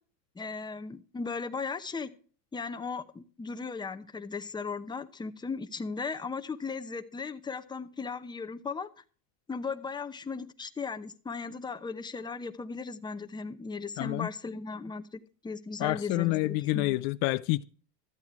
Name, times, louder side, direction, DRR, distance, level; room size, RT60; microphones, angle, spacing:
voice 1, 0.4-2.1 2.5-9.0 9.5-17.0, left 4 dB, 10° left, 0.8 m, -37 dB
voice 2, 14.0-14.3 15.8-17.6, left 20 dB, 55° left, 0.5 m, -28 dB
13.5 x 8.5 x 4.8 m
supercardioid pair, 110°, 47 cm